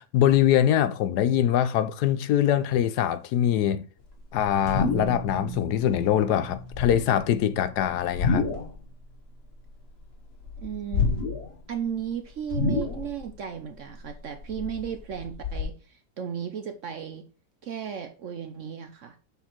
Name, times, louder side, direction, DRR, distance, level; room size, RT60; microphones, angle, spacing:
voice 1, 0.0-3.8 4.3-8.5, left 10 dB, 75° left, 1.2 m, -23 dB
sound 1, 4.1-5.5 5.7-6.1 6.6-7.3 8.0-8.8 9.1-10.1 10.4-11.6 11.9-12.0 12.5-13.3 13.7-15.6, left 4 dB, 40° left, 1.2 m, -28 dB
sound 2, 4.7-8.9, right 2 dB, 15° right, 0.8 m, -40 dB
voice 2, 10.6-11.3 11.7-17.2 17.6-19.2, right 8 dB, 60° right, 0.8 m, -35 dB
6.8 x 4.7 x 4.4 m
omnidirectional pair, 1.8 m